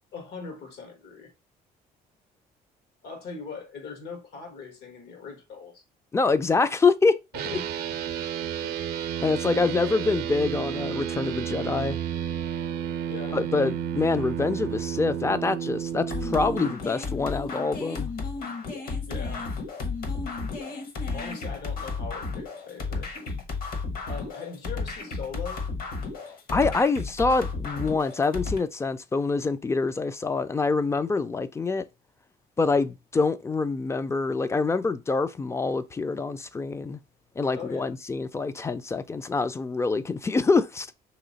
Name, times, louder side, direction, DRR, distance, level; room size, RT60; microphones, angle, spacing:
voice 1, 0.1-1.3 3.0-5.8 7.3-7.7 8.6-8.8 13.1-13.4 19.1-19.5 21.1-23.1 24.0-25.7 37.5-37.9, left 5 dB, 75° left, 1.4 m, -40 dB
voice 2, 6.1-7.2 7.5-7.6 9.2-12.0 13.3-18.1 26.5-31.9 32.6-37.0 37.4-40.9, left 4 dB, 15° left, 0.3 m, -25 dB
sound 1, 7.3-16.7, right 9 dB, 70° right, 0.5 m, -31 dB
sound 2, 16.1-28.6, left 4 dB, 60° left, 1.2 m, -33 dB
3.1 x 2.9 x 3.9 m
cardioid pair, 110°, 17 cm